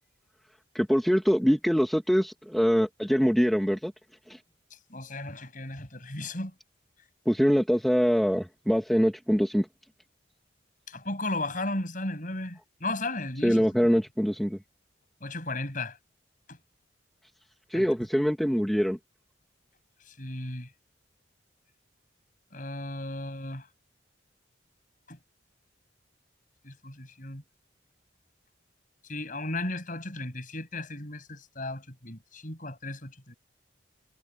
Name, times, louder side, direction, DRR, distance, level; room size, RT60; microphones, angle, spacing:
voice 1, 0.7-3.9 4.3-4.4 7.2-9.7 13.4-14.6 17.7-19.0, equal, ahead, 1.8 m, -24 dB
voice 2, 4.9-6.5 10.9-13.6 15.2-16.0 17.7-17.9 20.2-20.7 22.5-23.7 25.1-25.2 26.6-27.4 29.1-33.3, left 2 dB, 45° left, 7.1 m, -35 dB
head